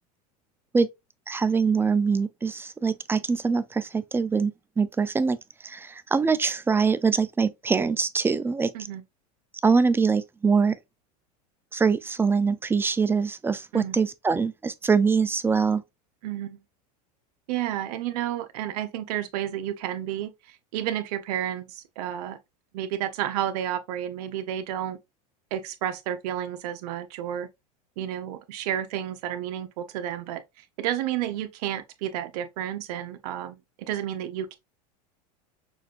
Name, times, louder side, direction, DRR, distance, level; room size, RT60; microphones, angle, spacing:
voice 1, 1.3-5.4 5.6-8.7 9.6-10.8 11.7-15.8, right 5 dB, 10° right, 0.3 m, -23 dB
voice 2, 16.2-16.6 17.5-22.4 22.7-25.0 25.5-27.5 28.0-30.4 30.8-34.6, right 11 dB, 75° right, 0.9 m, -31 dB
6.2 x 2.6 x 2.5 m
supercardioid pair, 110°, 20 cm